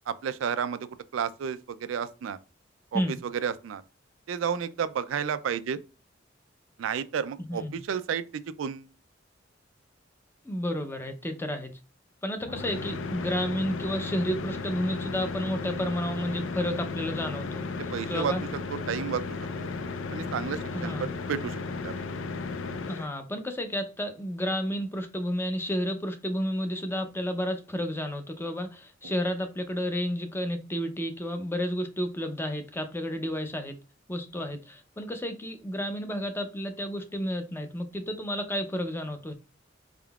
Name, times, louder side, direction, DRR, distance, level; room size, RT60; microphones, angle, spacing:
voice 1, 0.1-2.4 2.9-3.8 4.3-5.8 6.8-8.9 17.9-18.3 18.9-19.2 20.1-22.0, right 7 dB, 85° right, 0.4 m, -31 dB
voice 2, 7.5-7.8 10.4-11.7 12.2-17.6 18.1-18.4 20.7-21.1 22.9-33.8 34.1-39.3, equal, 10° left, 0.5 m, -31 dB
sound 1, 12.4-23.1, left 4 dB, 85° left, 0.5 m, -35 dB
4.3 x 3.6 x 2.3 m
head